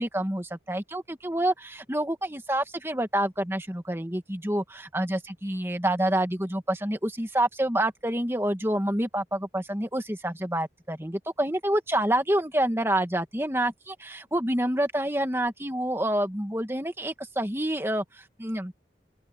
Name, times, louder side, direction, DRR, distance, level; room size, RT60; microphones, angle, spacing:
voice 1, 0.0-18.7, right 1 dB, 15° right, 1.8 m, -28 dB
open air
head